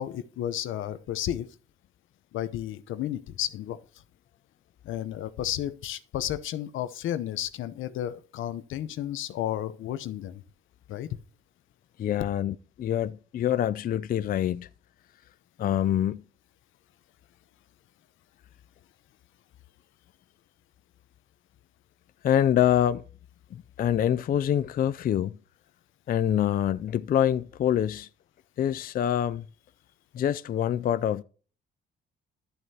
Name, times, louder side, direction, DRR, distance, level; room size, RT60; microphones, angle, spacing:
voice 1, 0.0-1.5 2.3-3.8 4.8-10.4 10.9-11.1, left 12 dB, 80° left, 0.8 m, -32 dB
voice 2, 12.0-14.7 15.6-16.2 22.2-23.0 23.5-25.4 26.1-28.1 28.6-29.4 30.1-31.2, left 10 dB, 45° left, 0.4 m, -25 dB
11.5 x 7.8 x 2.8 m
cardioid pair, 90°, 20 cm